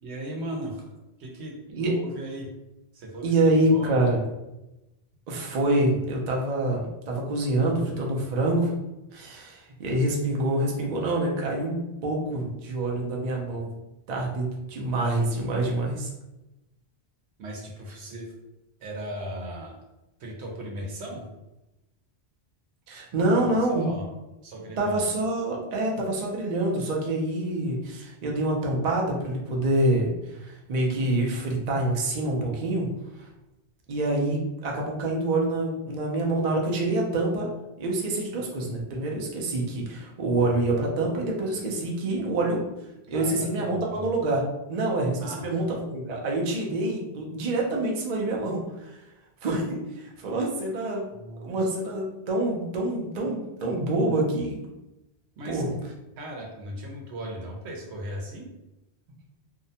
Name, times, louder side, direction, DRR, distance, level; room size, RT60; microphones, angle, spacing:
voice 1, 0.0-0.8 1.2-1.5 1.8-2.5 2.9-3.9 17.4-18.3 18.8-19.8 20.2-21.3 23.2-24.1 24.4-25.1 43.1-44.0 45.2-45.6 51.1-51.6 55.4-55.6 56.2-58.5, right 1 dB, 85° right, -1 dB, 1.0 m, -37 dB
voice 2, 3.2-4.2 5.3-8.7 9.1-13.7 14.1-16.1 22.9-23.9 24.8-32.9 33.9-37.5 37.8-42.6 43.1-44.4 44.7-49.0 49.4-51.0 51.4-54.6 55.4-55.7, right 2 dB, 50° right, -1 dB, 0.5 m, -26 dB
2.6 x 2.1 x 2.7 m, 0.97 s
omnidirectional pair, 1.1 m